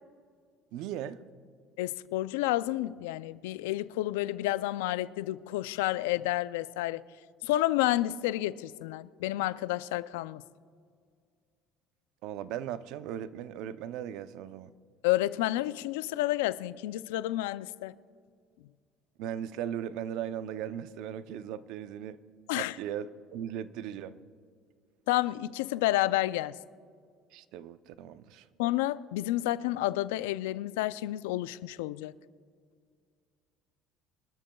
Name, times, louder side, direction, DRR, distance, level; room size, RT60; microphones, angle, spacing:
voice 1, 0.7-1.2 12.2-14.7 19.2-22.2 22.5-24.2 27.3-28.5, right 10 dB, 70° right, 0.6 m, -38 dB
voice 2, 1.8-7.0 7.4-10.4 15.0-17.9 22.5-22.8 25.1-26.6 28.6-32.1, left 16 dB, 90° left, 0.4 m, -30 dB
24.5 x 13.0 x 2.3 m
supercardioid pair, 90°, 0 cm